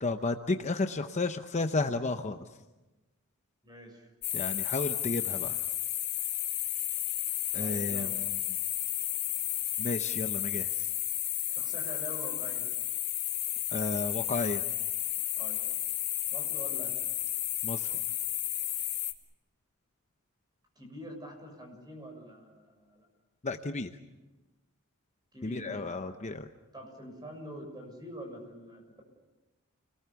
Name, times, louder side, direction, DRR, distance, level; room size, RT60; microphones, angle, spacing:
voice 1, 0.0-2.4 4.3-5.6 7.5-8.2 9.8-10.9 13.7-14.6 17.6-18.0 23.4-23.9 25.4-26.5, left 3 dB, 30° left, 7 dB, 0.8 m, -32 dB
voice 2, 3.6-4.1 7.6-8.2 11.5-12.7 15.4-15.6 16.3-16.9 20.7-23.1 25.3-25.9 26.7-29.0, equal, 20° right, 3 dB, 6.5 m, -45 dB
sound 1, 4.2-19.1, left 13 dB, 45° left, 2.0 m, -32 dB
30.0 x 20.0 x 7.0 m, 1.1 s
head